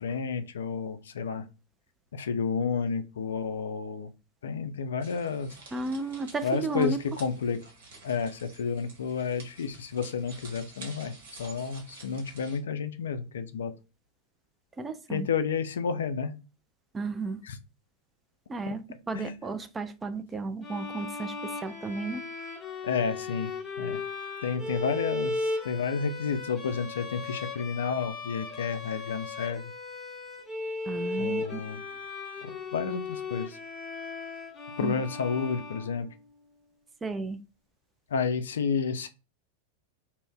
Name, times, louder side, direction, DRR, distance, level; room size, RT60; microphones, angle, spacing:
voice 1, 0.0-1.5 2.1-4.1 4.4-5.6 6.4-7.6 8.0-13.7 15.1-16.3 17.5-17.6 19.1-19.4 22.8-24.0 24.4-29.7 31.2-31.8 32.4-33.6 34.8-36.1 38.1-39.1, left 6 dB, 65° left, 0.4 m, -31 dB
sound 1, 5.0-12.6, right 3 dB, 60° right, 1.0 m, -50 dB
voice 2, 5.7-7.0 14.8-15.3 16.9-17.4 18.5-22.2 30.9-31.6 34.8-34.9 37.0-37.4, right 3 dB, 15° right, 0.3 m, -33 dB
sound 2, 20.6-36.3, left 3 dB, 10° left, 0.9 m, -37 dB
2.5 x 2.0 x 3.7 m
figure-of-eight pair, 90°, 0 cm